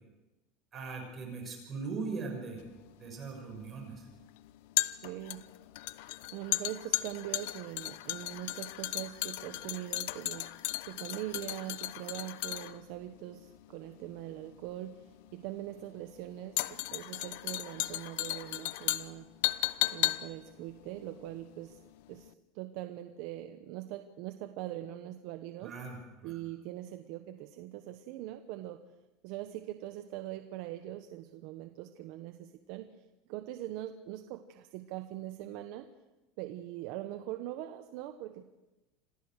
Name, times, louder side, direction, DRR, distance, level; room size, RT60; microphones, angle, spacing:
voice 1, 0.7-2.6 3.0-4.1 25.6-26.4, right 4 dB, 30° right, 1 dB, 6.6 m, -40 dB
sound 1, 2.6-21.9 22.2-22.3, left 18 dB, 75° left, 0.7 m, -36 dB
voice 2, 5.0-5.4 6.3-19.3 19.9-21.8 22.1-25.7 26.2-28.8 29.2-32.9 33.3-35.9 36.4-38.4, right 14 dB, 65° right, 7 dB, 1.1 m, -42 dB
27.0 x 15.5 x 6.5 m, 1.0 s
supercardioid pair, 135°, 0 cm